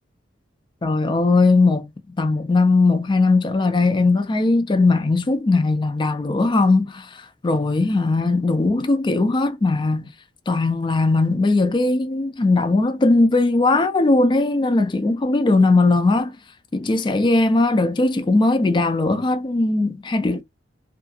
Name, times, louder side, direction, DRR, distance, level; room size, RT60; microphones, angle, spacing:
voice 1, 0.8-1.9 2.2-10.1 10.5-16.3 16.7-20.4, left 3 dB, 25° left, 0.4 m, -19 dB
2.7 x 2.3 x 2.6 m
head